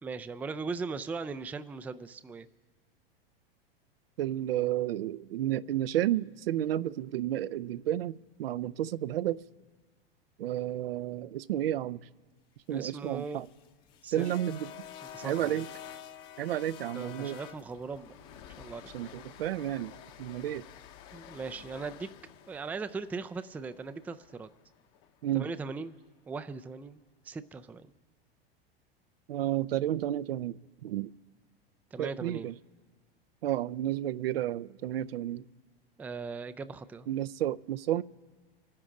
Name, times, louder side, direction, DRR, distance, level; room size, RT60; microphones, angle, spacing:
voice 1, 0.0-2.5 12.7-13.5 14.0-14.3 15.1-15.6 16.9-18.2 18.6-18.9 21.1-22.1 22.5-24.5 25.3-26.0 26.3-27.0 27.2-27.9 31.9-32.5 36.0-37.1 37.9-38.0, right 4 dB, 5° right, 0.3 m, -39 dB
voice 2, 4.2-9.4 10.4-12.0 12.7-13.5 14.1-14.6 15.2-15.7 16.4-17.4 18.9-19.9 20.2-20.6 25.2-25.5 29.3-31.1 32.0-32.5 33.4-35.4 37.1-38.0, right 12 dB, 70° right, 0.5 m, -31 dB
sound 1, 12.9-25.1, left 10 dB, 45° left, 1.1 m, -49 dB
26.0 x 9.9 x 3.8 m
hypercardioid pair, 90°, 30 cm